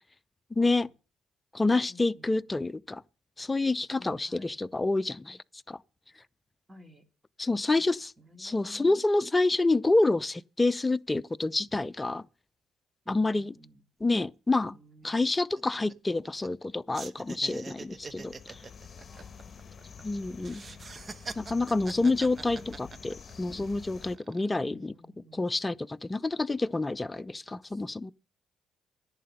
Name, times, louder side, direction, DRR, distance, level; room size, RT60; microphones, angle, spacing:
voice 1, 0.5-0.9 1.5-3.0 3.4-5.4 5.7-5.8 7.4-8.1 8.4-12.2 13.1-13.5 14.0-14.8 15.0-18.6 20.0-20.6 21.4-24.9 25.4-28.1, left 2 dB, 20° left, 0.5 m, -28 dB
voice 2, 1.9-2.4 4.0-4.6 6.7-7.0 7.6-9.0 13.0-13.8 14.7-15.7 19.1-19.5 24.3-25.5 27.6-27.8, left 1 dB, 15° right, 2.6 m, -54 dB
sound 1, 14.5-14.7 15.0-16.7 16.9-20.0 20.4-23.5 24.0-24.5, right 4 dB, 35° right, 1.0 m, -44 dB
sound 2, 17.8-24.2, left 6 dB, 40° left, 1.3 m, -48 dB
11.0 x 8.7 x 6.6 m
cardioid pair, 80°, 0 cm